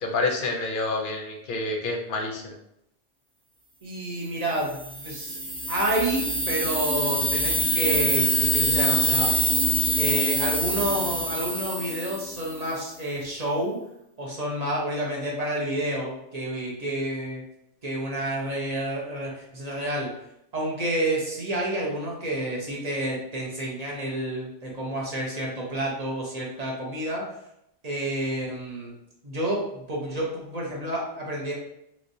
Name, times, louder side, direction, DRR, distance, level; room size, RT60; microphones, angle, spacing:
voice 1, 0.0-2.6, left 2 dB, 55° left, 1 dB, 0.8 m, -28 dB
voice 2, 3.8-5.4 5.7-9.3 10.0-13.8 14.2-17.4 17.8-20.1 20.5-27.2 27.8-28.9 29.2-31.5, right 1 dB, 40° right, -3 dB, 0.9 m, -29 dB
sound 1, 4.7-12.6, equal, 10° right, 0.4 m, -25 dB
3.2 x 3.1 x 2.6 m, 0.79 s
omnidirectional pair, 1.2 m